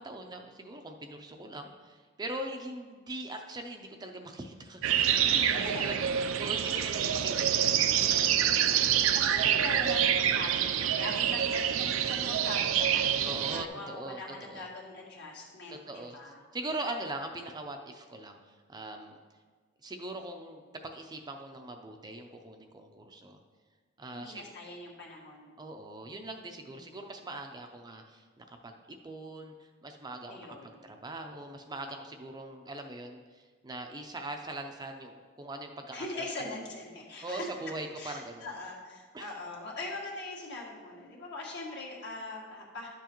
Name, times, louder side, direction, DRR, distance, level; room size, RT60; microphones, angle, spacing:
voice 1, 0.0-4.9 5.2-9.2 13.2-14.7 15.7-19.2 19.8-23.4 24.0-24.5 25.6-36.1 36.4-36.5 37.2-38.5 39.1-39.4, right 2 dB, 20° right, 4 dB, 0.5 m, -42 dB
sound 1, 4.8-13.7, right 9 dB, 75° right, 0.4 m, -27 dB
voice 2, 5.6-6.0 8.6-16.4 24.1-25.6 26.6-26.9 30.3-30.6 35.9-37.4 38.0-42.9, left 2 dB, 60° left, -2 dB, 1.7 m, -41 dB
11.0 x 7.0 x 3.0 m, 1.5 s
head